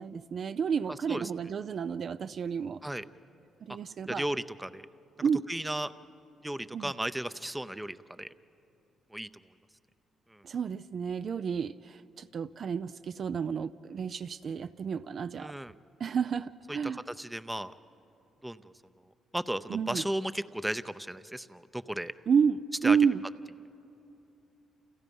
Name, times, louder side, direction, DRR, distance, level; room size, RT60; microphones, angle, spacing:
voice 1, 0.0-2.8 3.6-4.2 5.2-5.4 6.7-6.9 10.4-15.5 16.0-17.0 19.7-20.0 22.3-23.2, right 6 dB, 50° right, 12 dB, 0.5 m, -30 dB
voice 2, 0.9-1.3 2.8-3.0 4.1-4.8 5.5-5.9 6.4-8.3 9.1-9.3 10.3-10.4 15.3-15.7 16.7-17.7 18.4-18.7 19.3-22.1 22.8-23.0, right 1 dB, 5° right, 13 dB, 0.6 m, -35 dB
30.0 x 28.5 x 5.4 m, 2.8 s
cardioid pair, 90°, 0 cm